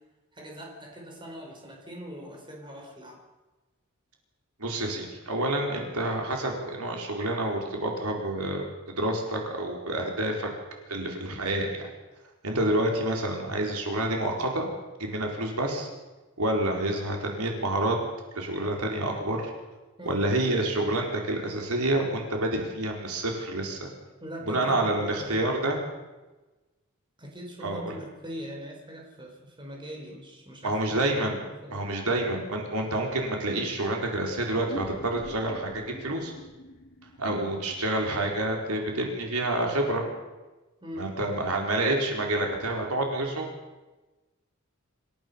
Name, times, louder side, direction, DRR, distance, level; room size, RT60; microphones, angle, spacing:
voice 1, 0.3-3.2 16.7-16.8 20.0-20.2 24.2-25.3 27.2-31.9 40.8-41.1, equal, 20° right, 1 dB, 4.9 m, -42 dB
voice 2, 4.6-10.5 10.9-11.9 12.4-14.7 15.0-15.9 16.4-18.0 18.3-19.4 20.0-23.8 24.4-25.8 27.6-28.0 30.6-31.4 31.7-36.3 37.2-40.0 41.0-43.5, right 1 dB, 85° right, 1 dB, 4.5 m, -28 dB
sound 1, 34.4-39.3, left 1 dB, 50° left, 2.6 m, -45 dB
27.0 x 15.0 x 7.0 m, 1.1 s
head